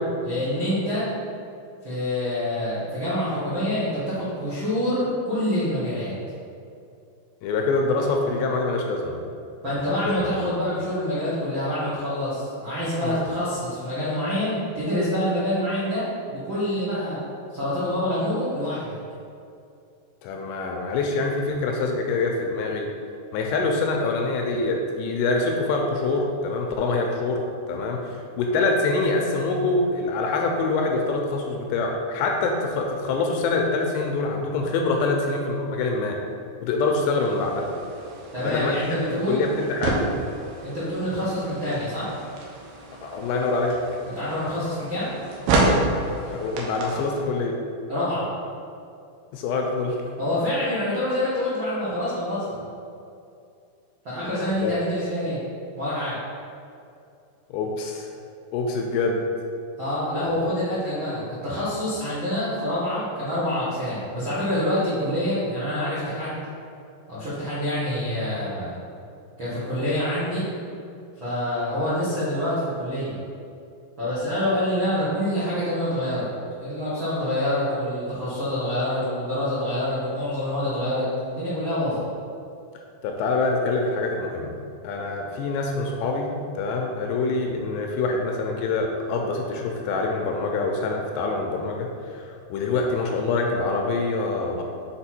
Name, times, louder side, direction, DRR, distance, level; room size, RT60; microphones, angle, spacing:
voice 1, 0.2-1.1 1.8-6.1 9.6-17.2 17.5-19.0 38.3-39.4 40.6-42.1 44.1-45.1 47.9-48.3 50.2-52.6 54.0-55.4 55.8-56.2 59.8-66.4 67.1-68.8 69.4-70.5 71.2-73.2 74.0-76.3 76.6-82.0, left 1 dB, 60° right, -12 dB, 1.2 m, -26 dB
voice 2, 7.4-9.2 10.1-10.3 13.0-13.2 20.2-22.9 23.3-36.2 36.6-37.6 38.4-38.8 39.1-40.0 43.0-43.8 46.2-47.6 49.3-50.0 54.2-54.7 57.5-58.1 58.5-59.3 83.0-84.6 84.8-94.6, left 3 dB, 80° left, 2 dB, 2.7 m, -25 dB
sound 1, 37.2-47.2, right 2 dB, 80° right, 2.1 m, -29 dB
6.9 x 4.9 x 4.3 m, 2.5 s
omnidirectional pair, 5.2 m